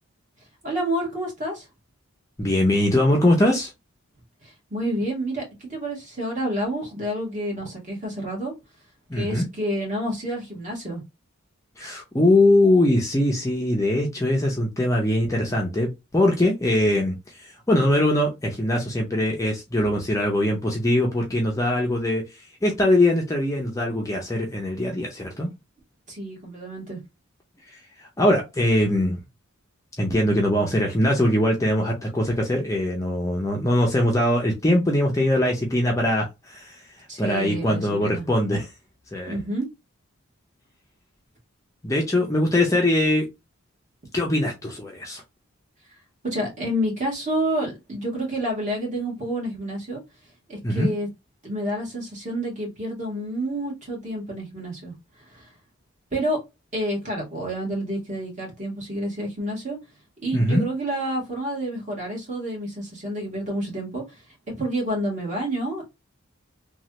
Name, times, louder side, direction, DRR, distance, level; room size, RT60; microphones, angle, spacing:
voice 1, 0.6-1.7 4.4-8.5 9.1-11.0 26.1-27.0 37.1-38.2 39.3-39.7 46.2-50.0 50.5-51.1 51.4-54.9 55.2-55.5 56.1-56.4 56.7-59.8 60.2-65.9, right 1 dB, 35° right, -1 dB, 1.4 m, -29 dB
voice 2, 2.4-3.7 9.1-9.5 11.8-22.2 22.6-25.5 27.7-29.2 30.0-36.8 37.2-38.7 39.1-39.4 41.8-43.3 44.1-45.2 50.6-50.9 60.3-60.6, left 1 dB, 15° left, 0 dB, 0.5 m, -22 dB
3.1 x 2.3 x 2.9 m, 0.23 s
head